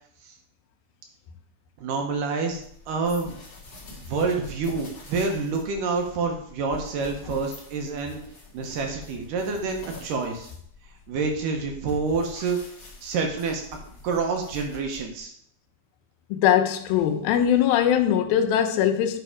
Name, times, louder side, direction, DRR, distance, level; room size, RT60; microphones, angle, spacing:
voice 1, 1.8-3.4 4.0-8.2 8.5-10.5 11.1-12.6 13.0-13.6 14.0-15.3, right 4 dB, 75° right, 2.4 m, -27 dB
sound 1, 2.5-15.2, left 2 dB, 45° left, 1.2 m, -46 dB
voice 2, 16.3-19.2, left 10 dB, 80° left, 2.5 m, -21 dB
9.3 x 3.4 x 4.7 m
omnidirectional pair, 4.2 m